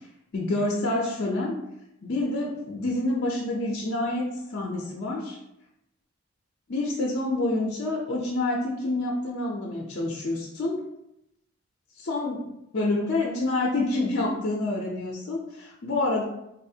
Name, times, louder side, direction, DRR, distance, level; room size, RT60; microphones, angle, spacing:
voice 1, 0.3-1.6 2.0-5.4 6.7-10.8 12.0-12.4 12.7-16.2, left 2 dB, 50° left, -2 dB, 0.5 m, -27 dB
4.1 x 2.4 x 2.7 m, 0.83 s
head